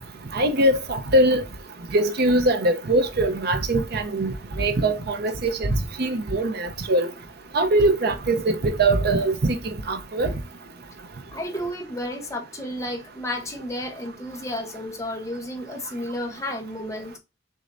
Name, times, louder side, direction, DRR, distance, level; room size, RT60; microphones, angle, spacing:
voice 1, 0.3-1.4 1.9-7.1 7.5-10.3, right 1 dB, 55° right, 0.7 m, -22 dB
voice 2, 11.3-17.2, left 1 dB, 15° left, 1.0 m, -32 dB
6.4 x 2.7 x 2.5 m
head